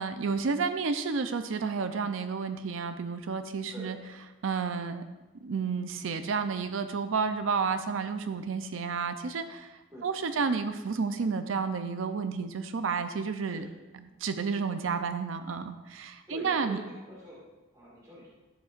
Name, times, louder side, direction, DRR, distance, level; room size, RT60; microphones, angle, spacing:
voice 1, 0.0-4.0 4.4-5.0 5.4-9.7 10.0-13.7 14.2-16.8, right 5 dB, 75° right, 9 dB, 0.5 m, -31 dB
voice 2, 9.9-10.5 13.5-13.7 14.0-14.1 16.3-17.4 17.7-18.3, equal, 20° right, -6 dB, 1.9 m, -45 dB
11.0 x 7.3 x 2.5 m, 1.1 s
head